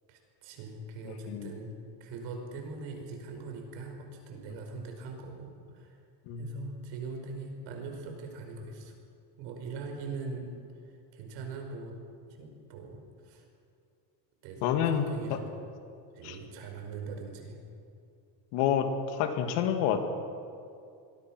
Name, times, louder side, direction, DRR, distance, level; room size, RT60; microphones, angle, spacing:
voice 1, 0.1-6.0 6.4-9.0 9.4-10.5 11.1-12.0 12.3-13.5 14.4-15.4 16.1-17.6, right 4 dB, 60° right, 3 dB, 5.3 m, -41 dB
voice 2, 14.6-15.4 16.2-16.4 18.5-20.0, left 8 dB, 60° left, 6 dB, 2.3 m, -28 dB
27.0 x 22.5 x 6.2 m, 2.4 s
cardioid pair, 175°, 49 cm